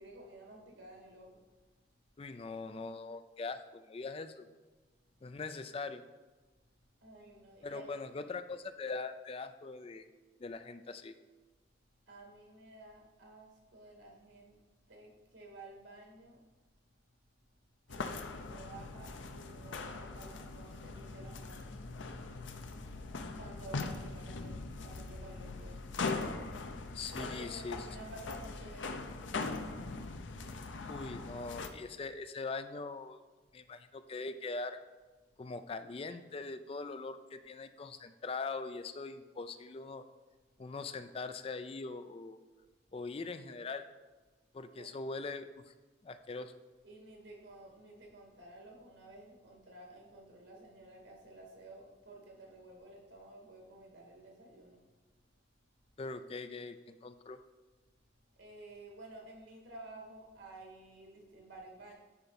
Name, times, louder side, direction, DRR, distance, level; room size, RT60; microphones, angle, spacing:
voice 1, 0.0-1.4 7.0-8.0 12.1-14.6 14.9-16.4 17.9-21.8 23.3-25.9 27.2-29.2 44.8-44.9 46.8-54.8 58.3-61.9, right 2 dB, 80° right, -1 dB, 2.2 m, -52 dB
voice 2, 2.2-4.5 5.2-6.0 7.6-10.1 10.4-11.2 26.9-27.9 30.9-33.2 33.5-34.8 35.4-40.0 40.6-42.4 42.9-43.8 44.5-45.7 46.0-46.5 56.0-57.4, left 3 dB, 30° left, 11 dB, 0.3 m, -42 dB
sound 1, 17.9-31.7, left 3 dB, 75° left, 0.6 m, -41 dB
9.9 x 4.9 x 4.2 m, 1.3 s
head